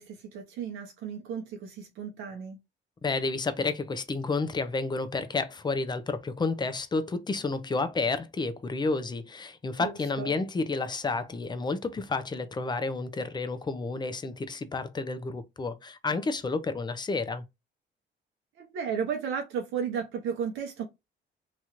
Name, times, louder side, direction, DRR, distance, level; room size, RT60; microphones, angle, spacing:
voice 1, 0.0-2.6 9.8-10.3 18.6-20.8, right 7 dB, 85° right, 0.7 m, -34 dB
voice 2, 3.0-17.4, left 3 dB, 20° left, 0.5 m, -30 dB
3.0 x 2.4 x 2.8 m
cardioid pair, 90°, 20 cm